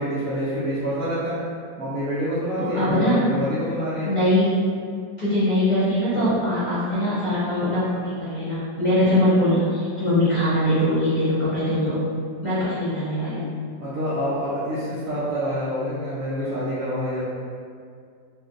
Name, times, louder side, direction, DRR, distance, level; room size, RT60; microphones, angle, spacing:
voice 1, 0.0-1.4 1.8-4.1 13.8-17.2, equal, 65° right, -10 dB, 0.9 m, -27 dB
voice 2, 2.6-3.2 4.0-4.6 5.2-12.0 12.4-13.5, left 1 dB, 30° left, -13 dB, 0.9 m, -22 dB
2.8 x 2.6 x 3.7 m, 2.2 s
omnidirectional pair, 2.0 m